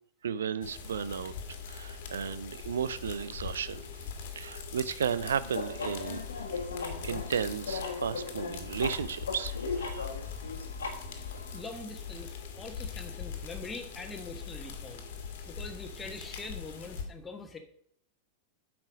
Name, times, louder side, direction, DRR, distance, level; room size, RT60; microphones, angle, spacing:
voice 1, 0.2-1.3 1.7-4.0 4.4-6.2 7.0-10.0, right 7 dB, 65° right, 16 dB, 0.5 m, -34 dB
sound 1, 0.6-17.0, left 6 dB, 55° left, 1.7 m, -42 dB
sound 2, 5.4-11.6, left 4 dB, 70° left, 1.5 m, -38 dB
voice 2, 11.5-15.1 15.5-17.6, left 3 dB, 15° left, 5 dB, 1.4 m, -43 dB
8.7 x 5.9 x 5.1 m, 0.66 s
figure-of-eight pair, 90°, 0 cm